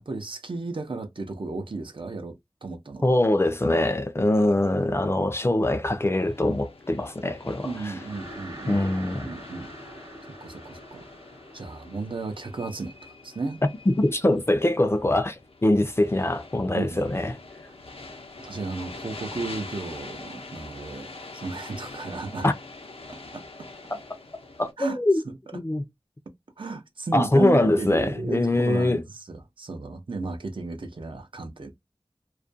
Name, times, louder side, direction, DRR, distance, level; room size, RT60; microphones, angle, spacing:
voice 1, 0.0-2.4 2.6-3.1 7.6-9.7 10.4-11.1 11.5-12.9 13.2-13.6 16.7-17.0 18.4-22.5 23.1-23.4 24.8-25.0 25.3-25.4 26.6-31.8, right 3 dB, 60° right, 0.6 m, -34 dB
voice 2, 3.0-7.9 8.7-9.3 13.9-17.3 22.4-22.5 23.9-24.0 24.6-25.2 25.5-25.8 27.1-29.0, left 1 dB, 25° left, 0.4 m, -23 dB
sound 1, 6.1-24.7, left 3 dB, 80° left, 0.6 m, -44 dB
sound 2, 7.6-13.1, right 1 dB, 40° right, 0.9 m, -45 dB
2.4 x 2.2 x 2.5 m
wide cardioid pair, 60°, 10 cm